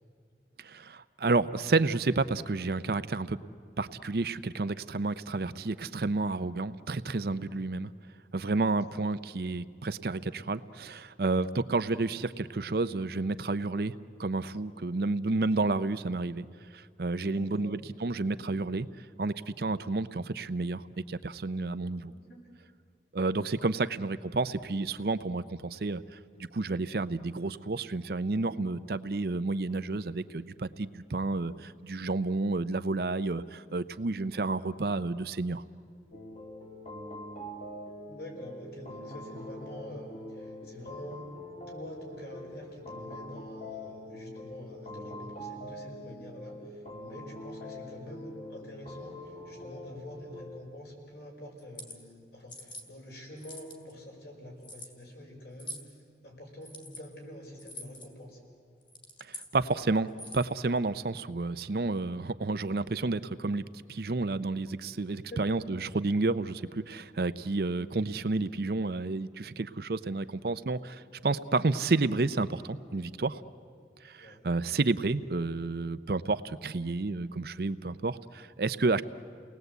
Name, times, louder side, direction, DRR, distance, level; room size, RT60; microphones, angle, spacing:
voice 1, 0.6-3.4 3.8-7.9 8.3-13.9 14.2-16.5 16.7-18.9 19.2-22.1 23.1-26.0 26.5-35.6 59.3-63.6 63.9-73.4 74.0-79.0, right 3 dB, 55° right, 13 dB, 0.6 m, -30 dB
voice 2, 17.2-17.8 22.1-22.4 38.1-41.3 41.7-55.8 56.2-58.4 65.3-65.4 74.1-74.4, left 1 dB, 65° left, -1 dB, 5.8 m, -46 dB
sound 1, 36.1-50.6, left 1 dB, 40° left, 2.2 m, -44 dB
sound 2, 51.6-52.0 52.5-52.9 53.4-53.9 54.6-54.9 55.6-55.9 56.6-57.0 57.6-58.1 58.8-59.5 60.1-60.5, left 1 dB, 25° left, 2.5 m, -44 dB
29.5 x 19.0 x 8.1 m, 2.2 s
head